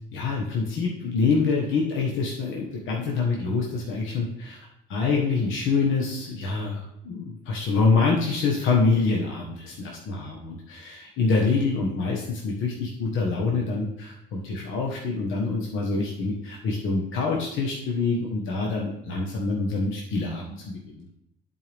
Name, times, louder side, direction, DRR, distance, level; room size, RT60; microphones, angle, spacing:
voice 1, 0.1-4.6 4.9-21.1, left 4 dB, 85° left, -2 dB, 1.2 m, -26 dB
10.5 x 4.6 x 3.5 m, 0.80 s
cardioid pair, 90°, 20 cm